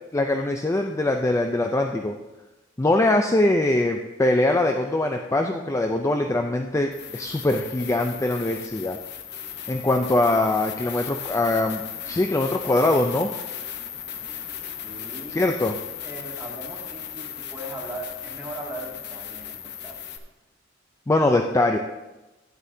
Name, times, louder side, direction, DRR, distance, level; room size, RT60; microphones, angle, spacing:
voice 1, 0.1-2.1 2.8-9.0 9.7-11.8 12.1-13.3 15.3-15.7 21.1-21.8, left 2 dB, 15° left, 4 dB, 0.4 m, -22 dB
sound 1, 6.9-20.2, left 9 dB, 60° left, 0.8 m, -36 dB
voice 2, 14.8-15.6 16.0-20.0, right 1 dB, 10° right, -5 dB, 2.2 m, -38 dB
12.0 x 9.6 x 2.7 m, 1.1 s
head